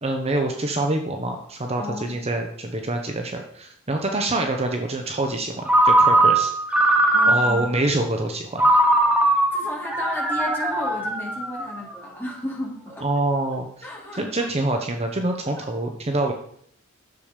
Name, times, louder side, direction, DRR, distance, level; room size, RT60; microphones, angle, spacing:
voice 1, 0.0-6.9 7.3-8.8 13.0-13.9 14.1-16.3, right 2 dB, 30° right, 4 dB, 0.9 m, -26 dB
voice 2, 1.8-2.2 7.1-7.7 9.5-13.1 13.8-14.5 15.6-15.7, left 1 dB, 10° left, -2 dB, 2.7 m, -34 dB
Ringtone, 5.7-7.7 8.6-11.9, right 1 dB, 5° right, 1.4 m, -19 dB
10.5 x 7.1 x 5.1 m, 0.66 s
head